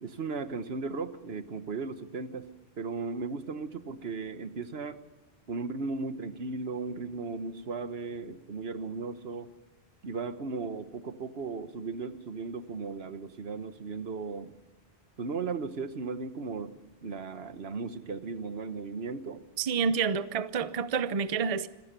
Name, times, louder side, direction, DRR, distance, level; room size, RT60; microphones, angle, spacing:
voice 1, 0.0-2.5 2.8-5.0 5.5-9.5 10.0-14.5 15.2-19.4, right 4 dB, 70° right, 1.4 m, -36 dB
voice 2, 19.6-21.7, right 6 dB, 40° right, 0.7 m, -28 dB
26.0 x 16.5 x 6.8 m
omnidirectional pair, 1.1 m